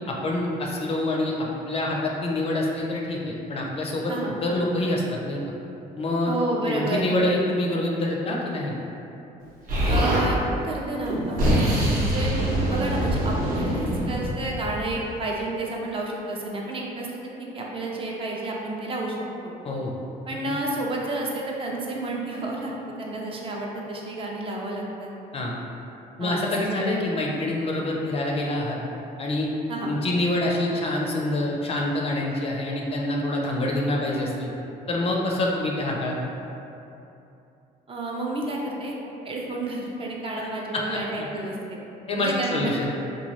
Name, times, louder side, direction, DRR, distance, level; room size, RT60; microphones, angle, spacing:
voice 1, 0.1-4.1 4.4-5.4 6.0-6.3 6.7-8.7 19.6-19.9 25.3-25.5 26.2-28.8 29.2-29.5 29.8-34.5 34.9-36.2 40.7-41.0 42.1-43.0, left 1 dB, 35° left, -2 dB, 0.4 m, -26 dB
voice 2, 6.2-7.1 9.8-10.4 10.6-12.3 12.7-19.2 19.4-19.5 20.3-22.7 23.0-25.1 26.2-26.8 29.7-30.0 37.9-39.0 39.2-41.8 42.2-42.7, right 2 dB, 35° right, -2 dB, 0.4 m, -30 dB
Explosion, 9.7-10.3 11.0-14.9, right 1 dB, 55° right, 0.8 m, -24 dB
3.0 x 2.2 x 2.9 m, 2.8 s
cardioid pair, 110°, 17 cm